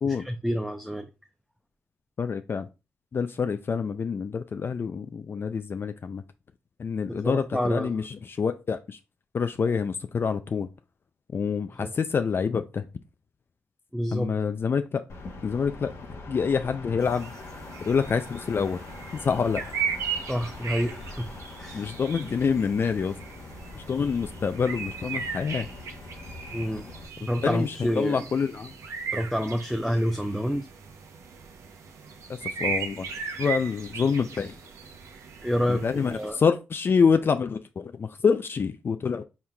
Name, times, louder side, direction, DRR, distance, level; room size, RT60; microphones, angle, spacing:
voice 1, 0.0-1.1 7.1-8.0 9.7-9.8 11.8-11.9 13.9-14.3 20.3-21.3 21.6-21.9 26.5-26.9 27.2-28.2 29.1-30.7 35.4-36.4, equal, ahead, 0.5 m, -28 dB
voice 2, 2.2-2.7 3.1-6.2 6.8-9.0 9.3-10.7 11.3-12.9 14.1-15.0 15.4-15.9 16.3-17.3 17.8-18.8 19.1-19.6 21.7-23.2 23.7-25.7 27.4-28.7 32.3-33.1 33.4-34.6 35.7-39.2, left 6 dB, 50° left, 0.3 m, -26 dB
sound 1, 15.1-27.1, left 3 dB, 65° left, 1.0 m, -43 dB
sound 2, 17.0-36.3, right 6 dB, 75° right, 0.7 m, -37 dB
4.4 x 3.6 x 2.2 m
cardioid pair, 55°, 5 cm